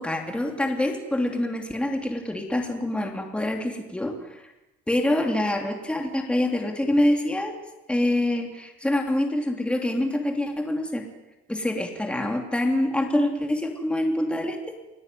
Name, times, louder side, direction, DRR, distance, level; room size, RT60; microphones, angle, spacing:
voice 1, 0.0-4.5 4.9-7.5 7.9-11.1 11.5-14.6, left 1 dB, 5° left, 3 dB, 3.2 m, -25 dB
30.0 x 20.5 x 9.4 m, 0.98 s
cardioid pair, 150°, 21 cm